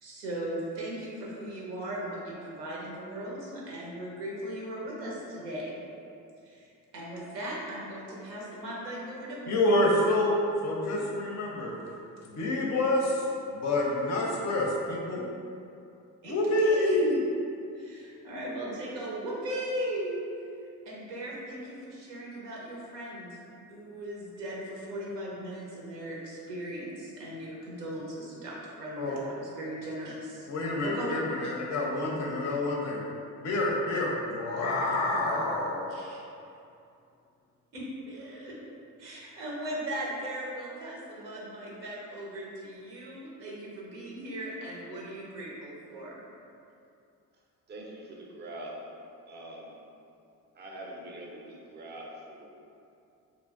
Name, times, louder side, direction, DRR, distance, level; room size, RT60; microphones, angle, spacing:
voice 1, 0.0-5.8 6.4-6.7 6.9-9.7 16.2-17.1 17.8-20.2 20.9-30.5 30.8-31.5 35.9-36.2 37.7-38.6 39.0-46.2, right 1 dB, 85° right, -5 dB, 0.7 m, -38 dB
voice 2, 9.5-11.7 12.2-13.3 13.5-15.2 16.2-17.2 29.0-29.2 30.5-33.1 33.4-35.9, left 1 dB, 35° left, -2 dB, 0.5 m, -27 dB
voice 3, 47.7-48.9 49.3-49.8 50.5-52.6, right 1 dB, 25° right, -1 dB, 0.5 m, -43 dB
3.0 x 2.4 x 2.4 m, 2.6 s
hypercardioid pair, 50°, 48 cm